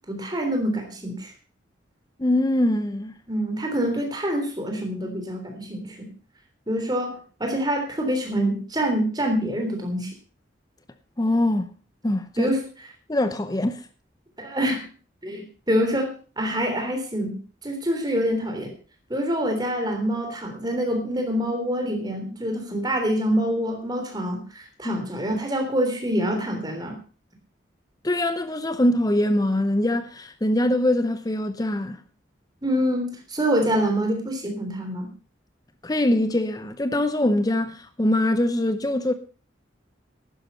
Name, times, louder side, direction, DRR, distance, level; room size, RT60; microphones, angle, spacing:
voice 1, 0.1-1.3 3.3-6.1 6.7-10.1 12.4-12.6 14.4-14.9 15.2-17.4 17.6-18.7 19.1-27.0 32.6-35.1, equal, 20° right, 3.4 m, -26 dB
voice 2, 2.2-3.1 11.2-11.7 12.0-12.5 13.1-13.8 24.8-25.0 28.0-32.0 35.8-39.1, left 1 dB, 20° left, 0.6 m, -23 dB
12.0 x 10.0 x 5.6 m
head